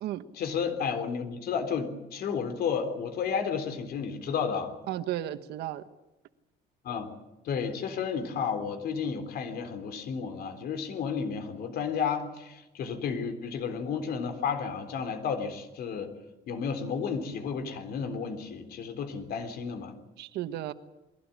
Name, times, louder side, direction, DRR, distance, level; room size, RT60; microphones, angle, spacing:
voice 1, 0.3-4.8 6.8-7.1 7.4-16.1 16.5-19.9, left 6 dB, 65° left, 8 dB, 3.6 m, -32 dB
voice 2, 4.9-5.8 20.2-20.7, right 13 dB, 80° right, 11 dB, 1.3 m, -34 dB
21.5 x 16.5 x 9.9 m, 1.0 s
cardioid pair, 110°, 17 cm